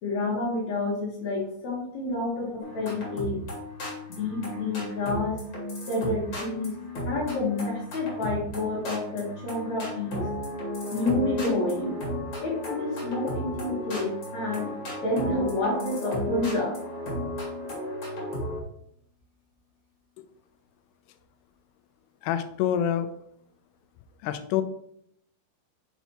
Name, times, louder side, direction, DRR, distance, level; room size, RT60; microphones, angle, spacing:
voice 1, 0.0-3.4 4.1-5.4 5.9-6.8 7.1-10.2 10.9-12.0 12.4-14.7 15.0-16.8, left 2 dB, 60° left, -4 dB, 2.1 m, -29 dB
sound 1, 2.6-18.6, left 1 dB, 40° left, 2.2 m, -34 dB
voice 2, 22.2-23.1 24.2-24.6, left 10 dB, 80° left, 9 dB, 2.5 m, -26 dB
7.1 x 5.6 x 3.0 m, 0.70 s
omnidirectional pair, 5.0 m